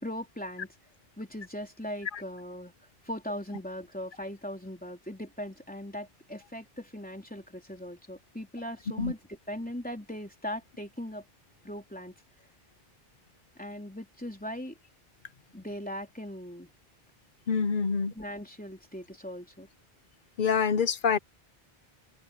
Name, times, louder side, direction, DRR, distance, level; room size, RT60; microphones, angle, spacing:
voice 1, 0.0-0.7 1.2-2.7 3.0-11.2 11.6-12.1 13.6-14.8 15.5-16.7 18.1-19.7, equal, 10° left, 3.4 m, -39 dB
voice 2, 17.5-18.1 20.4-21.2, left 6 dB, 55° left, 0.9 m, -26 dB
open air
omnidirectional pair, 1.0 m